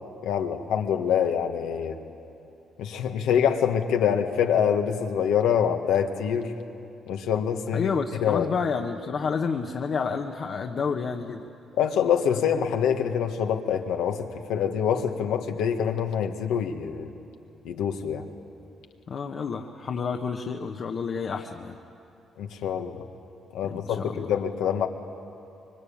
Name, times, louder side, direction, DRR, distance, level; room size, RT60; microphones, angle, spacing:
voice 1, 0.2-2.0 2.8-6.5 7.1-7.9 8.2-8.5 11.8-17.1 17.6-18.2 22.4-23.0 23.5-24.9, left 8 dB, 90° left, 4 dB, 1.6 m, -25 dB
voice 2, 7.7-11.5 19.1-21.8 23.6-24.3, left 5 dB, 55° left, 3 dB, 1.2 m, -30 dB
25.5 x 23.5 x 8.7 m, 2.7 s
cardioid pair, 90°, 0 cm